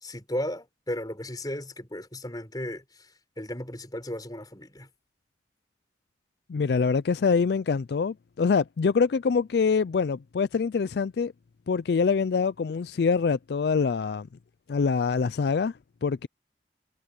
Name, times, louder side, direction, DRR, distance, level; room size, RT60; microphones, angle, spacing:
voice 1, 0.0-2.8 3.4-4.9, left 1 dB, 20° left, 4.8 m, -35 dB
voice 2, 6.5-11.3 11.7-14.3 14.7-16.3, left 5 dB, 65° left, 0.4 m, -25 dB
head